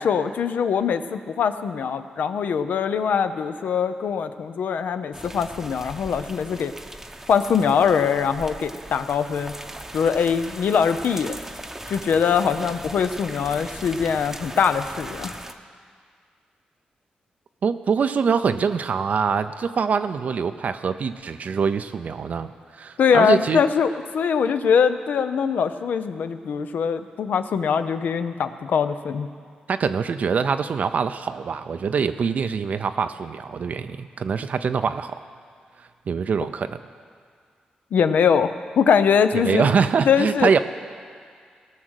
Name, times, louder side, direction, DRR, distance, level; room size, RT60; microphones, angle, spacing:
voice 1, 0.0-6.7 7.3-9.5 9.9-11.4 11.9-15.4 23.0-29.3 37.9-39.7 40.1-40.5, left 6 dB, 75° left, 10 dB, 0.6 m, -22 dB
sound 1, 5.1-15.5, right 1 dB, 10° right, 0.7 m, -39 dB
voice 2, 17.6-23.6 29.7-35.2 36.1-36.8 39.3-40.6, right 6 dB, 60° right, 9 dB, 0.5 m, -24 dB
18.0 x 6.4 x 6.4 m, 2.1 s
cardioid pair, 70°, 3 cm